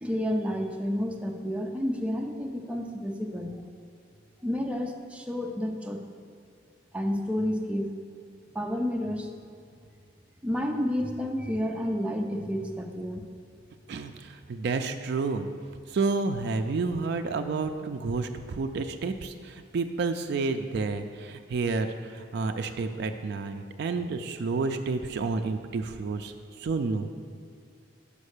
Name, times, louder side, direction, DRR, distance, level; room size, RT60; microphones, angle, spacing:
voice 1, 0.0-3.6 4.4-6.0 6.9-8.0 8.5-9.3 10.4-13.3, equal, 5° right, 1 dB, 0.5 m, -30 dB
voice 2, 13.9-15.5 15.9-27.1, right 4 dB, 60° right, 6 dB, 0.4 m, -30 dB
5.4 x 5.2 x 6.5 m, 2.4 s
head